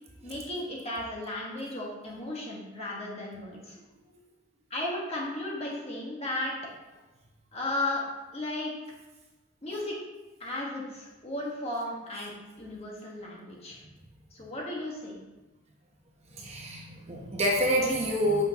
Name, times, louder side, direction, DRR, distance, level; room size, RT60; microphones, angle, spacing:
voice 1, 0.2-3.8 4.7-6.5 7.5-8.0 8.3-8.7 9.6-10.0 10.4-13.8 14.3-15.2, left 1 dB, 30° left, -3 dB, 1.5 m, -35 dB
voice 2, 16.3-18.4, equal, 30° right, -1 dB, 0.9 m, -27 dB
8.3 x 5.7 x 3.0 m, 1.1 s
head